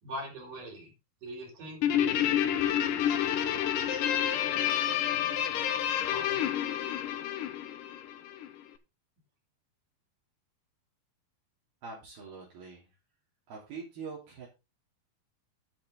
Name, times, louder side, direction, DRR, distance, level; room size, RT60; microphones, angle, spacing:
voice 1, 0.0-0.9 1.2-6.4, equal, 55° right, 1 dB, 6.2 m, -46 dB
Guitar, 1.8-8.5, left 10 dB, 70° left, 2.3 m, -29 dB
voice 2, 11.8-12.9 13.5-14.5, right 5 dB, 75° right, -5 dB, 5.2 m, -43 dB
10.0 x 8.7 x 3.9 m, 0.27 s
omnidirectional pair, 4.4 m